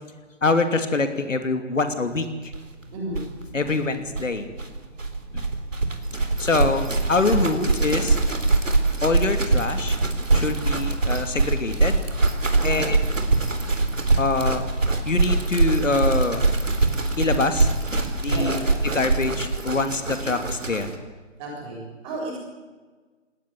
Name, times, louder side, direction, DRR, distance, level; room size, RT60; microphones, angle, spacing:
voice 1, 0.4-2.5 3.5-4.5 5.3-5.5 6.4-8.2 9.0-10.0 10.3-12.0 12.6-13.0 14.2-14.7 15.0-16.4 17.2-17.7 18.2-18.6 18.9-20.9, left 3 dB, 80° left, 8 dB, 3.0 m, -24 dB
sound 1, 2.5-2.6 2.8-2.9 3.1-21.0, right 3 dB, 85° right, 3.9 m, -23 dB
voice 2, 2.9-3.2 12.5-12.9 18.3-18.7 21.4-22.4, right 2 dB, 15° right, -1 dB, 7.1 m, -33 dB
19.5 x 19.5 x 9.8 m, 1.4 s
figure-of-eight pair, 155°, 37 cm